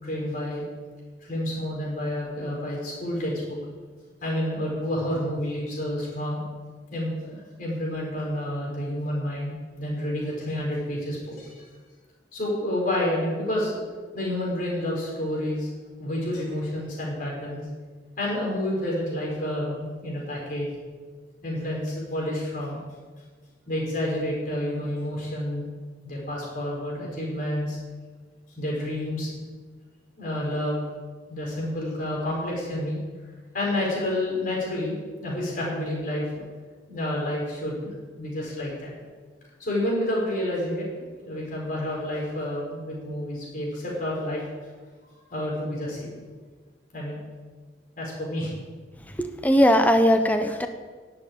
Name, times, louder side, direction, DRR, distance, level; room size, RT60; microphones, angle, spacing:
voice 1, 0.0-0.6 1.2-3.6 4.2-6.4 6.9-11.5 12.3-13.8 14.1-15.7 16.0-17.6 18.2-20.7 21.4-22.8 23.7-25.7 26.0-27.8 28.6-29.4 30.2-30.8 31.3-33.0 33.5-36.4 36.9-38.9 39.6-40.9 41.2-44.4 45.3-46.2 46.9-47.2 48.0-48.5, left 1 dB, 45° left, -3 dB, 4.8 m, -29 dB
voice 2, 49.2-50.7, equal, 10° left, 7 dB, 0.9 m, -19 dB
11.0 x 7.7 x 8.6 m, 1.5 s
head